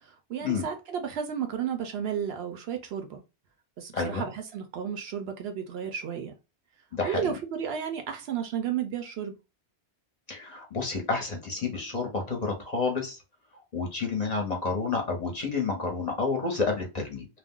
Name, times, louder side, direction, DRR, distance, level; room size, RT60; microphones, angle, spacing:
voice 1, 0.0-3.2 3.8-6.3 7.0-9.4, right 8 dB, 70° right, 0.7 m, -33 dB
voice 2, 3.9-4.2 6.9-7.3 10.3-13.2 13.7-17.3, left 4 dB, 45° left, 0.7 m, -30 dB
2.4 x 2.1 x 3.5 m
omnidirectional pair, 1.2 m